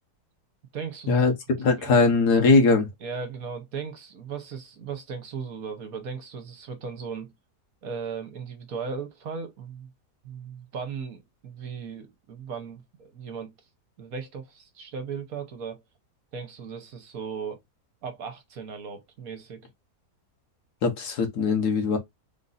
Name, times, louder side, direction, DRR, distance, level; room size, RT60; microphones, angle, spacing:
voice 1, 0.7-1.2 1.7-1.9 3.0-7.3 7.8-9.9 10.2-13.5 14.0-15.8 16.3-17.6 18.0-19.6, right 6 dB, 60° right, 1.3 m, -37 dB
voice 2, 1.6-2.9 20.8-22.0, left 4 dB, 75° left, 1.7 m, -20 dB
3.8 x 2.6 x 4.0 m
omnidirectional pair, 1.7 m